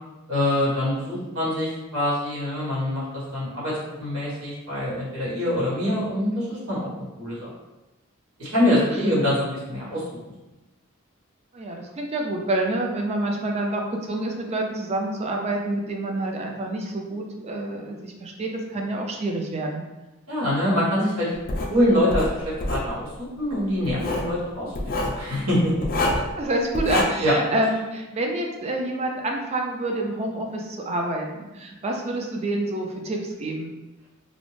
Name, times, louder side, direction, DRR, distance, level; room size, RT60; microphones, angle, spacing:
voice 1, 0.3-3.0 3.3-3.7 4.0-6.9 7.2-7.5 8.4-10.0 20.3-21.3 21.7-23.1 23.4-24.7 25.0-25.7 27.2-27.3, left 1 dB, 85° right, -8 dB, 1.3 m, -24 dB
voice 2, 11.5-19.8 26.0-33.7, right 1 dB, 30° right, 1 dB, 0.3 m, -28 dB
Writing, 21.5-21.7 22.1-22.9 23.9-24.3 24.8-25.2 25.8-26.3 26.7-27.0, left 2 dB, 40° left, 0.4 m, -25 dB
2.5 x 2.0 x 3.1 m, 1.1 s
head